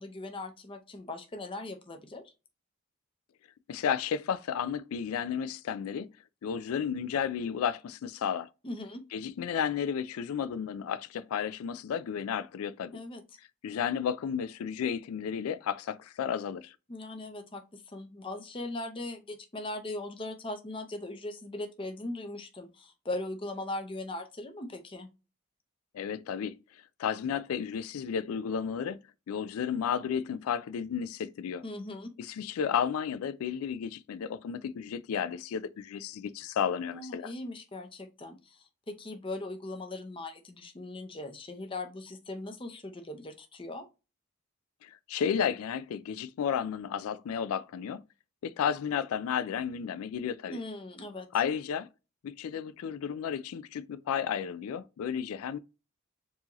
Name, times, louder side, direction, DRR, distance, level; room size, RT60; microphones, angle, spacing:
voice 1, 0.0-2.2 8.6-9.0 12.9-13.2 16.9-25.1 31.6-32.1 36.9-43.8 50.5-51.3, left 2 dB, 25° left, 0.6 m, -39 dB
voice 2, 3.7-6.1 6.4-8.5 9.1-12.9 13.6-16.8 25.9-29.0 29.3-31.6 32.2-37.3 44.8-48.0 48.4-50.6 51.3-51.9 52.2-55.6, left 7 dB, 85° left, 0.3 m, -32 dB
4.6 x 2.7 x 3.0 m
head